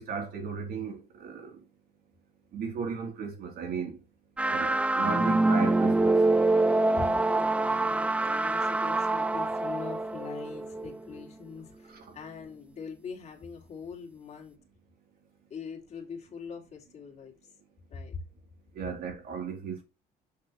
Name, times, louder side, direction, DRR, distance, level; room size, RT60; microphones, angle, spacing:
voice 1, 0.0-1.6 2.5-4.0 4.5-6.2 11.9-12.0 18.7-19.8, right 5 dB, 65° right, 3.1 m, -35 dB
sound 1, 4.4-11.2, right 2 dB, 5° right, 0.3 m, -25 dB
voice 2, 6.9-14.6 15.5-17.5 17.9-18.2, left 5 dB, 40° left, 2.6 m, -42 dB
6.8 x 6.0 x 3.1 m
cardioid pair, 110°, 17 cm